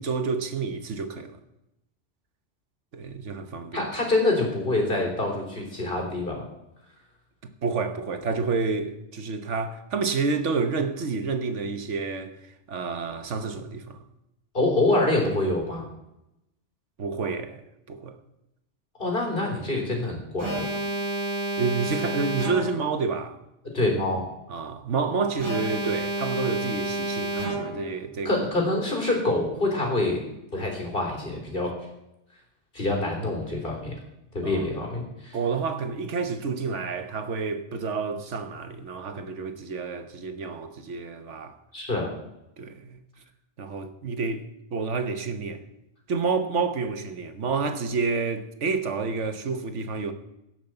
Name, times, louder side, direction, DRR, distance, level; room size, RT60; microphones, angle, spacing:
voice 1, 0.0-1.4 2.9-3.9 7.4-14.0 17.0-17.6 17.9-18.2 21.6-23.4 24.5-28.3 34.4-34.7 35.3-41.6 42.6-43.0 43.6-45.6 46.1-50.1, right 4 dB, 90° right, 1.4 m, -29 dB
voice 2, 3.7-6.5 14.5-15.9 19.0-20.7 23.7-24.2 28.3-30.2 30.5-31.7 32.7-33.9 34.3-35.4 41.7-42.1, left 2 dB, 50° left, 3.7 m, -26 dB
Alarm, 20.4-22.9 25.4-27.9, right 1 dB, 25° right, 2.5 m, -30 dB
16.0 x 6.0 x 7.9 m
omnidirectional pair, 1.2 m